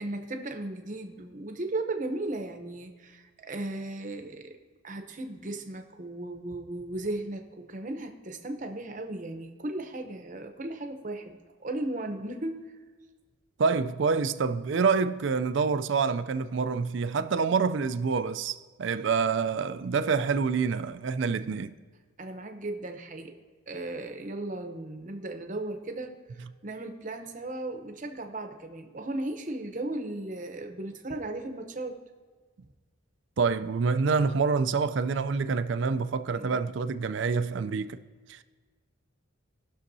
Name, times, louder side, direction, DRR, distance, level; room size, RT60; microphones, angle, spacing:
voice 1, 0.0-4.6 4.8-12.7 22.2-23.4 23.7-32.0 36.3-36.6, right 2 dB, 35° right, 0.8 m, -36 dB
voice 2, 13.6-21.8 33.4-38.0 38.3-38.4, right 5 dB, 60° right, 0.4 m, -27 dB
18.5 x 6.4 x 2.7 m
head